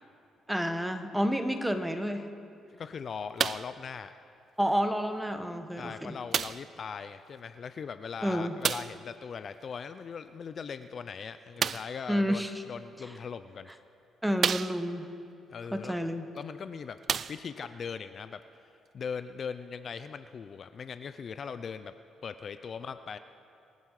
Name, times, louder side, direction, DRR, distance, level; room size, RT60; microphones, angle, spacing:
voice 1, 0.5-2.3 4.6-6.1 8.2-8.6 12.1-12.5 14.2-15.1 15.7-16.3, equal, 5° right, 8 dB, 1.2 m, -29 dB
voice 2, 2.7-4.1 5.8-13.7 15.5-16.0 16.3-17.0 17.3-21.9 22.2-23.2, left 6 dB, 50° left, 11 dB, 0.5 m, -40 dB
sound 1, 3.4-3.8 4.7-4.8 6.3-6.8 8.6-9.0 11.6-12.0 13.0-13.1 13.7-13.8 14.4-15.1 16.4-16.5 17.0-17.7 18.6-18.7, right 7 dB, 50° right, 0.3 m, -31 dB
26.5 x 9.4 x 4.9 m, 2.5 s
cardioid pair, 90°, 0 cm